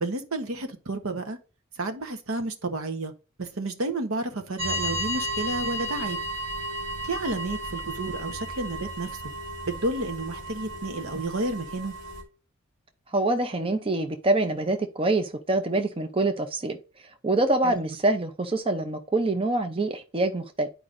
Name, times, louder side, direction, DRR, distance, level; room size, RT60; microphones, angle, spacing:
voice 1, 0.0-1.4 1.7-3.1 3.4-6.2 7.0-9.2 9.7-11.9 17.6-17.8, right 2 dB, 70° right, 1.1 m, -31 dB
sound 1, 4.6-12.2, right 1 dB, 85° right, 3.0 m, -33 dB
voice 2, 13.1-16.8 17.2-20.7, right 2 dB, 25° right, 0.6 m, -25 dB
10.5 x 4.8 x 2.6 m
head